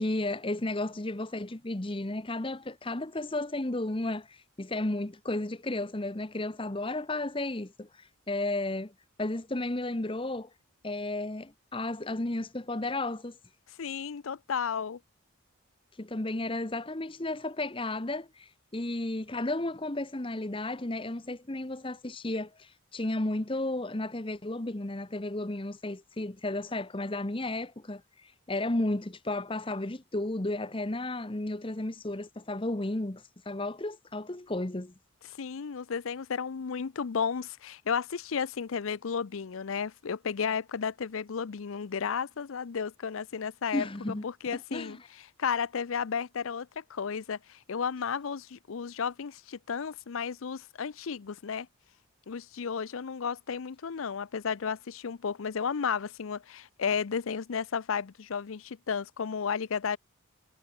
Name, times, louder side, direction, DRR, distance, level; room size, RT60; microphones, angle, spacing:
voice 1, 0.0-8.9 9.2-10.5 10.8-13.4 16.0-34.9 43.7-44.3 44.5-45.1, left 2 dB, 25° left, 0.9 m, -33 dB
voice 2, 13.8-15.0 35.4-43.9 44.2-51.7 52.3-60.0, left 6 dB, 75° left, 0.5 m, -33 dB
head